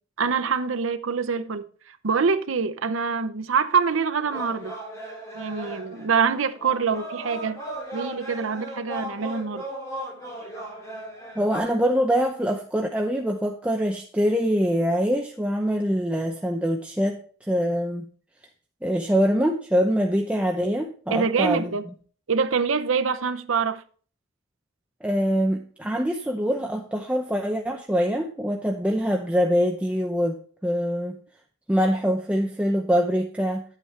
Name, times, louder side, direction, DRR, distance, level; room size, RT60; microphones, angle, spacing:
voice 1, 0.2-4.7 5.3-7.6 7.9-9.6 21.1-21.8 22.3-23.8, right 5 dB, 75° right, 0.7 m, -25 dB
sound 1, 4.2-11.6, right 1 dB, 15° left, 4.1 m, -37 dB
voice 2, 11.4-17.2 17.5-18.0 18.8-21.7 25.0-31.2 31.7-33.6, equal, 5° right, 0.7 m, -24 dB
11.0 x 8.3 x 3.3 m
head